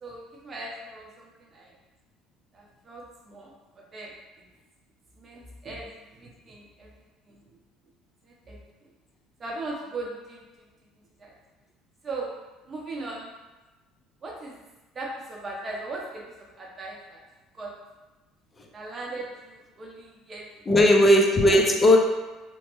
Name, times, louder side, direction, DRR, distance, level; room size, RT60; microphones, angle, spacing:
voice 1, 0.0-1.7 2.5-4.1 5.2-6.9 7.2-7.4 8.3-8.6 9.4-10.4 11.2-11.3 12.0-12.3 12.7-13.3 14.2-14.6 14.9-17.2 17.5-17.7 18.7-20.5, right 2 dB, 30° right, -2 dB, 0.8 m, -38 dB
voice 2, 20.7-22.0, left 1 dB, 20° left, 1 dB, 0.5 m, -17 dB
3.0 x 2.1 x 3.0 m, 1.1 s
cardioid pair, 105°, 0 cm